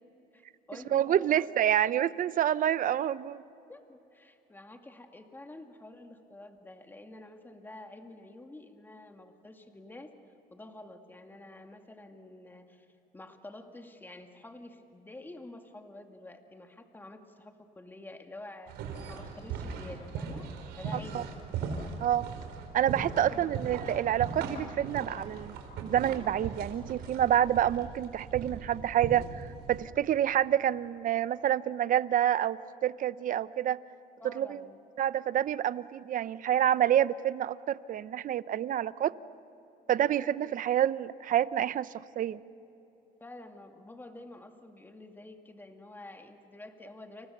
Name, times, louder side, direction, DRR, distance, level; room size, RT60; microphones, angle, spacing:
voice 1, 0.3-1.5 3.7-10.1 10.5-12.9 13.1-18.8 19.1-20.5 20.8-21.3 23.1-23.6 34.2-34.8 43.2-47.3, left 2 dB, 10° left, 4 dB, 2.4 m, -48 dB
voice 2, 0.9-3.4 21.1-21.2 22.0-22.2 22.7-25.6 25.8-33.8 34.4-34.6 35.0-39.1 39.9-41.9 42.2-42.4, right 11 dB, 55° right, 16 dB, 0.8 m, -28 dB
sound 1, 18.7-29.8, right 5 dB, 85° right, 4.1 m, -39 dB
29.5 x 29.0 x 6.8 m, 3.0 s
cardioid pair, 110°, 17 cm